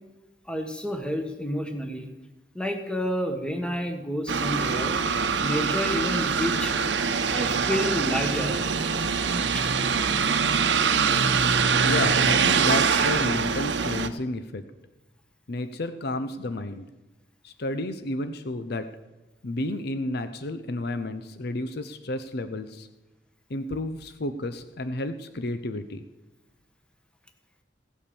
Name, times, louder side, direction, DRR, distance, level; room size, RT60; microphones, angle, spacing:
voice 1, 0.5-2.1 2.5-5.0 5.4-6.7 7.3-8.6 9.5-9.7, equal, 5° left, 5 dB, 1.3 m, -29 dB
sound 1, 4.3-14.1, right 5 dB, 75° right, 0.9 m, -24 dB
voice 2, 11.8-14.6 15.5-16.9 17.4-18.9 19.4-22.9 23.5-26.0, left 2 dB, 60° left, 10 dB, 0.7 m, -31 dB
16.5 x 8.4 x 6.9 m, 1.1 s
head